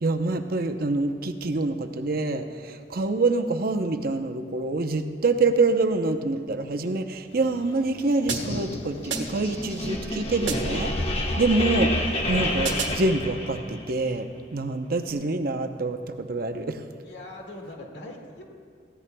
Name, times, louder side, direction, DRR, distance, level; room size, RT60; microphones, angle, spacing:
voice 1, 0.0-11.1 11.4-12.0 12.3-16.8, right 3 dB, 55° right, 6 dB, 0.7 m, -26 dB
sound 1, 7.3-13.1, left 1 dB, 85° left, 1.4 m, -48 dB
sound 2, 8.3-13.9, left 1 dB, 35° left, 1.2 m, -29 dB
sound 3, 8.3-8.7 9.1-9.5 10.5-10.9 12.6-13.1, right 5 dB, 80° right, 1.3 m, -32 dB
voice 2, 17.0-18.4, left 1 dB, 70° left, 0 dB, 2.0 m, -41 dB
19.5 x 15.0 x 2.2 m, 2.1 s
head